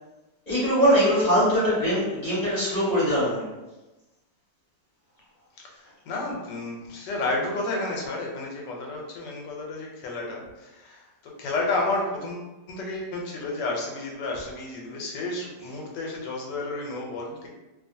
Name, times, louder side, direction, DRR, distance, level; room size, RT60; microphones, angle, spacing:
voice 1, 0.5-3.5, equal, 30° left, -9 dB, 0.9 m, -22 dB
voice 2, 5.6-17.5, left 2 dB, 85° left, -1 dB, 1.3 m, -31 dB
2.7 x 2.4 x 2.6 m, 1.1 s
omnidirectional pair, 1.8 m